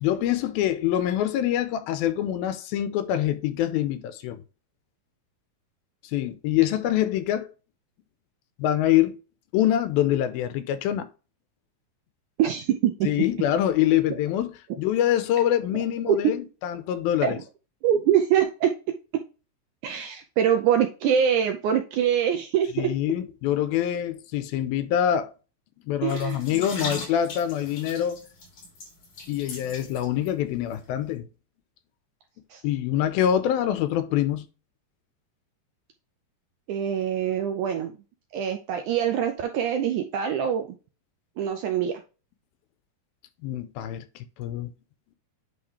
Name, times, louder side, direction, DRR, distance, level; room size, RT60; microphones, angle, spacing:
voice 1, 0.0-4.4 6.1-7.5 8.6-9.2 9.5-11.1 13.0-14.5 14.8-17.4 22.8-25.3 25.9-28.2 29.3-31.3 32.6-34.5 43.4-44.0 44.4-44.7, left 11 dB, 80° left, 2.6 m, -25 dB
voice 2, 12.4-13.1 15.7-16.3 17.2-17.4 17.8-18.7 19.8-22.9 26.0-26.6 32.5-32.6 36.7-38.0 38.3-40.8 41.4-42.0, right 9 dB, 80° right, 1.8 m, -24 dB
sound 1, 26.1-30.3 30.6-30.7, left 2 dB, 55° left, 4.5 m, -38 dB
9.6 x 3.6 x 3.2 m
omnidirectional pair, 4.3 m